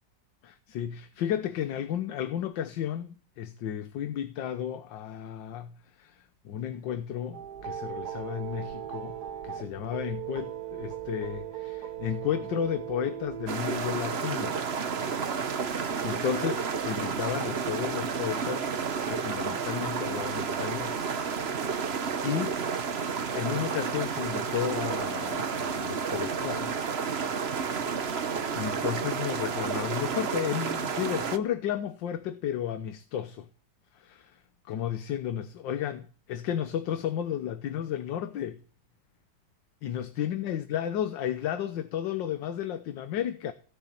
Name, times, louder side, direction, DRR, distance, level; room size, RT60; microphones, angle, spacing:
voice 1, 0.4-9.2 9.4-14.6 15.7-18.7 19.1-21.0 21.8-22.6 23.3-26.8 28.5-33.5 33.9-34.4 34.6-38.6 39.8-43.5, left 10 dB, 75° left, 1.6 m, -33 dB
sound 1, 7.3-13.5, right 11 dB, 60° right, 1.5 m, -38 dB
sound 2, 13.5-31.4, right 6 dB, 40° right, 1.0 m, -31 dB
17.0 x 7.2 x 9.9 m
omnidirectional pair, 2.0 m